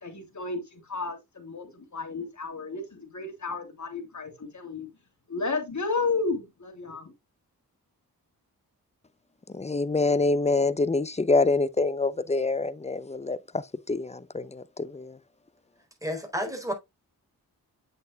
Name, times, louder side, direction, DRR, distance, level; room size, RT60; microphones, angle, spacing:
voice 1, 0.0-4.9 5.3-7.1, left 4 dB, 45° left, 3.0 m, -32 dB
voice 2, 9.5-15.2, left 3 dB, 15° left, 0.6 m, -26 dB
voice 3, 16.0-16.7, equal, 10° right, 3.9 m, -31 dB
8.3 x 6.6 x 2.3 m
cardioid pair, 45°, 39 cm